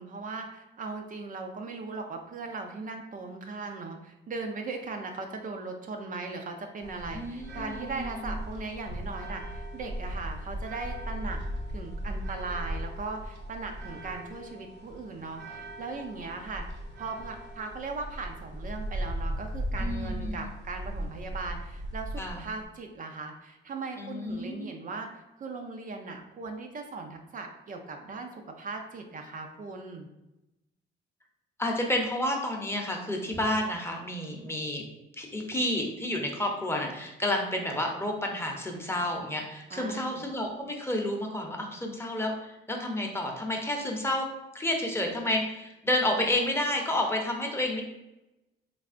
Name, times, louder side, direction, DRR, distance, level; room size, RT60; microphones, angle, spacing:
voice 1, 0.0-11.4 11.7-16.7 17.0-30.1 39.7-40.2, right 3 dB, 45° right, 4 dB, 0.4 m, -38 dB
sound 1, 6.8-22.6, right 1 dB, 60° right, 0.8 m, -37 dB
voice 2, 7.1-8.1 19.8-20.5 22.2-22.4 24.0-24.7 31.6-34.8 35.2-44.3 44.5-47.8, left 1 dB, 10° left, 1 dB, 0.7 m, -30 dB
3.4 x 3.2 x 2.5 m, 0.95 s
cardioid pair, 90°, 20 cm